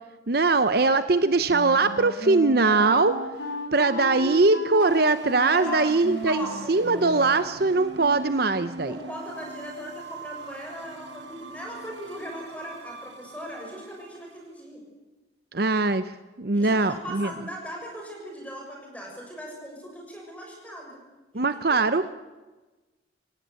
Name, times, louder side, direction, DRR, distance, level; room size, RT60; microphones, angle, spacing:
voice 1, 0.3-3.2 3.7-8.9 15.5-16.1 16.4-17.3 21.3-22.1, right 3 dB, 55° right, 11 dB, 0.8 m, -21 dB
Wind instrument woodwind instrument, 1.5-7.4, equal, 75° left, 4.2 m, -35 dB
sound 1, 4.8-14.4, right 2 dB, 70° right, 2.3 m, -42 dB
voice 2, 5.5-6.0 6.2-7.1 8.8-14.8 16.5-21.0 21.3-21.8, equal, 10° left, 0 dB, 7.0 m, -39 dB
27.0 x 17.5 x 8.3 m, 1.2 s
head